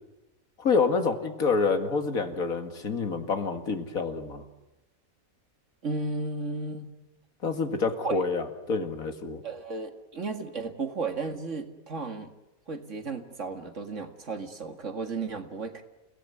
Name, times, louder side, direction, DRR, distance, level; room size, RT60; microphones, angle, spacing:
voice 1, 0.6-4.4 7.4-9.4, left 4 dB, 75° left, 7 dB, 2.5 m, -27 dB
voice 2, 5.8-6.9 8.0-8.2 9.4-12.3 12.7-15.8, right 3 dB, 55° right, 6 dB, 2.4 m, -34 dB
29.0 x 18.0 x 9.7 m, 0.95 s
omnidirectional pair, 1.5 m